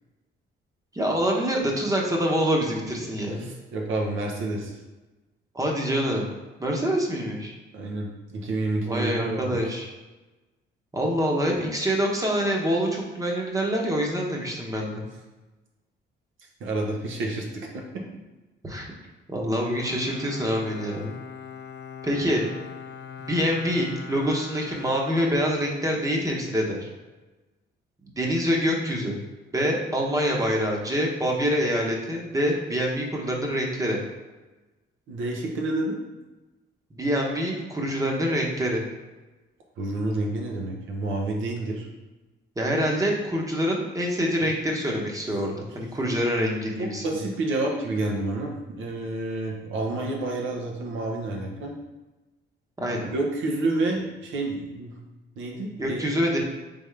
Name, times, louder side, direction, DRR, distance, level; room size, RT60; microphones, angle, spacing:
voice 1, 0.9-3.4 5.5-6.3 6.6-7.5 8.9-9.9 10.9-15.0 18.6-18.9 19.3-21.1 22.0-22.4 23.2-26.9 28.2-29.2 29.5-34.0 36.9-38.8 42.6-47.0 52.8-53.1 55.8-56.4, equal, 15° right, -1 dB, 0.9 m, -25 dB
voice 2, 3.4-4.7 7.7-9.6 16.6-18.0 35.1-36.0 39.8-41.9 46.8-51.7 52.9-54.9 55.4-56.0, right 2 dB, 80° right, 0 dB, 0.9 m, -29 dB
Bowed string instrument, 19.8-25.9, left 7 dB, 65° left, 0.4 m, -41 dB
3.6 x 3.6 x 3.3 m, 1.1 s
cardioid pair, 90°, 20 cm